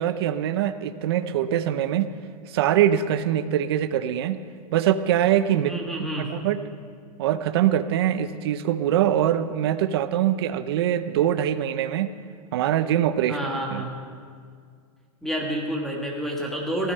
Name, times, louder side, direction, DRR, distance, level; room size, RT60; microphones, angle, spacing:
voice 1, 0.0-2.1 2.5-4.4 4.7-5.7 6.2-6.6 7.2-12.1 12.5-13.4 13.7-13.8, right 11 dB, 40° right, 11 dB, 0.6 m, -23 dB
voice 2, 5.6-6.3 13.3-13.9 15.2-16.9, right 1 dB, ahead, -1 dB, 1.5 m, -29 dB
15.5 x 13.5 x 5.5 m, 2.1 s
supercardioid pair, 175°, 20 cm